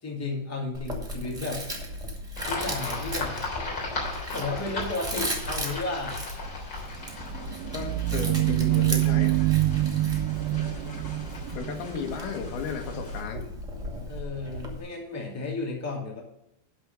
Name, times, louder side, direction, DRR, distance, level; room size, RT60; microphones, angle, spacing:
voice 1, 0.0-1.6 2.5-3.3 4.3-6.2 7.8-7.9 14.0-16.2, left 3 dB, 5° left, -2 dB, 1.4 m, -33 dB
Chewing mastication, 0.7-14.8, equal, 20° right, 1.1 m, -37 dB
sound 1, 2.4-13.2, left 2 dB, 30° left, 3.7 m, -38 dB
sound 2, 7.0-12.6, right 16 dB, 80° right, 2.3 m, -26 dB
voice 2, 7.7-9.5 11.5-13.5, left 6 dB, 80° left, 4 dB, 3.3 m, -34 dB
12.0 x 4.9 x 6.7 m, 0.80 s
omnidirectional pair, 4.5 m